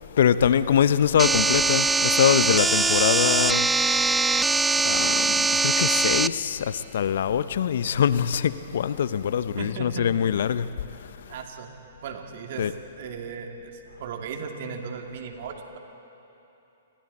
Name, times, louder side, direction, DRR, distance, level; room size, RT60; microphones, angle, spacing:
voice 1, 0.1-3.7 4.8-10.7 12.6-12.7, left 8 dB, 65° left, 0.7 m, -23 dB
sound 1, 1.2-6.3, right 3 dB, 10° right, 0.4 m, -22 dB
voice 2, 9.6-10.1 11.3-11.7 12.0-15.8, right 6 dB, 55° right, 2.6 m, -36 dB
29.5 x 23.0 x 4.2 m
hypercardioid pair, 125°, 0 cm